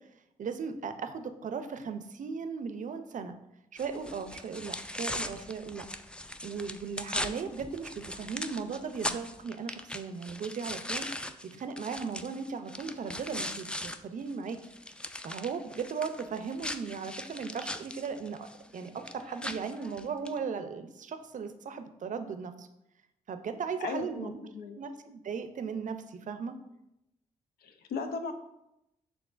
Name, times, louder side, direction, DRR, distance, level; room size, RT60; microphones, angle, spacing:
voice 1, 0.4-3.4 3.7-5.8 6.4-11.1 11.5-14.6 15.2-18.5 18.7-22.7 23.3-24.5 24.8-26.6, right 5 dB, 55° right, 9 dB, 0.5 m, -37 dB
sound 1, 3.8-14.0 14.3-20.4, left 1 dB, 5° left, 0.4 m, -39 dB
voice 2, 23.8-24.8 27.6-28.3, left 4 dB, 80° left, 7 dB, 0.5 m, -37 dB
6.0 x 3.5 x 2.5 m, 0.86 s
supercardioid pair, 45°, 16 cm